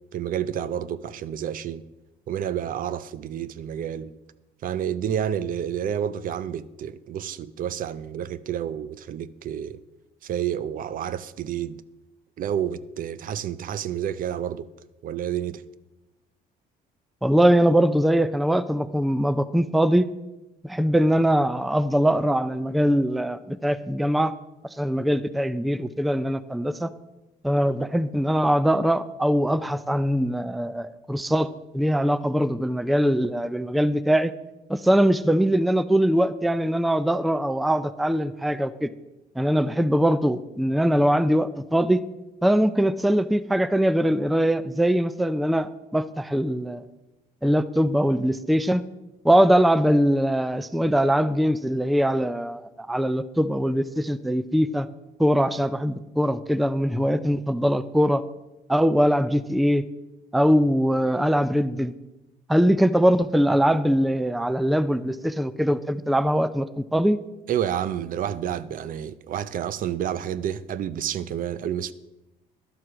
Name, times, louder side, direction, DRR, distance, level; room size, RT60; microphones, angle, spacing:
voice 1, 0.1-1.8 2.3-4.1 4.6-9.8 10.2-11.8 12.4-14.6 15.0-15.6 67.5-71.9, right 9 dB, 55° right, 0.6 m, -29 dB
voice 2, 17.2-20.1 20.6-24.3 24.8-26.9 27.4-31.5 31.7-34.3 34.7-38.9 39.4-42.0 42.4-46.8 47.4-48.8 49.2-54.9 55.2-58.2 58.7-59.8 60.3-61.9 62.5-67.2, equal, ahead, 0.4 m, -22 dB
11.5 x 7.6 x 6.0 m
cardioid pair, 110°, 17 cm